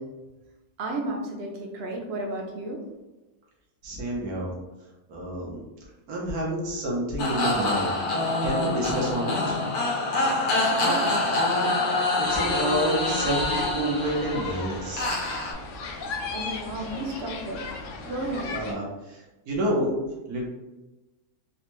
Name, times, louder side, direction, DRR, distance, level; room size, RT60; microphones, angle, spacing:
voice 1, 0.8-2.8 10.5-11.1 16.3-17.8 18.1-18.5, right 2 dB, 55° right, 1 dB, 0.7 m, -32 dB
voice 2, 3.8-4.5 5.1-5.6 6.1-8.0 8.4-9.6 12.2-15.1 18.5-20.0 20.3-20.5, right 1 dB, 85° right, -3 dB, 1.4 m, -29 dB
sound 1, 7.2-15.5, left 2 dB, 90° left, 1.3 m, -26 dB
sound 2, 12.2-18.7, left 4 dB, 70° left, 0.9 m, -35 dB
4.1 x 2.2 x 3.0 m, 1.1 s
omnidirectional pair, 1.6 m